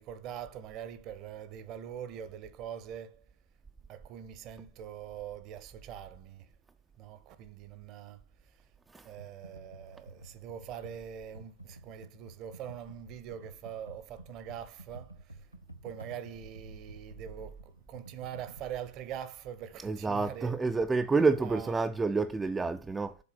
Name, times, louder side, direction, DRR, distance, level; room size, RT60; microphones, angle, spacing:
voice 1, 0.0-3.3 3.9-6.5 7.0-8.2 9.0-15.5 15.8-20.6 21.4-21.8, right 9 dB, 40° right, 0.7 m, -43 dB
Computer keyboard, 9.2-18.6, right 2 dB, 90° left, 0.7 m, -51 dB
voice 2, 19.8-23.2, right 4 dB, 10° right, 0.3 m, -28 dB
6.9 x 3.9 x 5.8 m
figure-of-eight pair, 90°, 0 cm